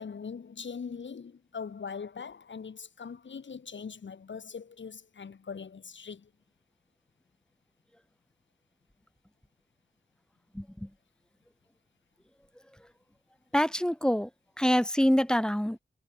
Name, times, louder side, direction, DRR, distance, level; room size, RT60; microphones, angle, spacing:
voice 1, 0.0-6.3, left 6 dB, 85° left, 5.6 m, -41 dB
voice 2, 10.5-10.9 13.5-14.3 14.6-15.8, equal, 5° left, 1.2 m, -25 dB
cardioid pair, 55°, 19 cm